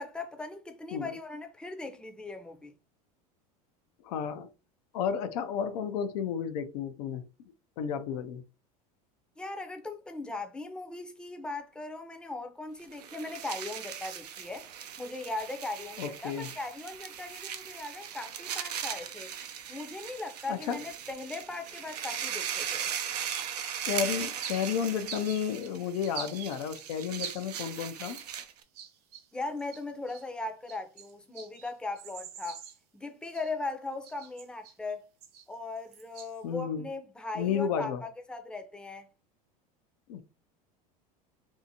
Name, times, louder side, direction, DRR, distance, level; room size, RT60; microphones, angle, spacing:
voice 1, 0.0-2.7 9.4-14.7 15.0-19.3 19.7-22.9 29.3-32.6 32.9-35.1 35.5-39.1, left 3 dB, 5° left, 0.5 m, -39 dB
voice 2, 4.0-4.5 4.9-7.2 7.8-8.4 16.0-16.5 20.5-20.8 23.8-28.2 36.4-36.9 37.3-38.0 40.1-40.2, left 7 dB, 75° left, 0.5 m, -32 dB
sound 1, 12.8-28.6, right 9 dB, 90° right, 0.5 m, -39 dB
sound 2, 23.3-23.7 23.9-28.4 28.8-30.2 30.7-32.8 33.3-33.7 34.0-34.9 35.2-36.4, right 7 dB, 55° right, 0.8 m, -45 dB
2.7 x 2.4 x 2.7 m
hypercardioid pair, 95°, 20 cm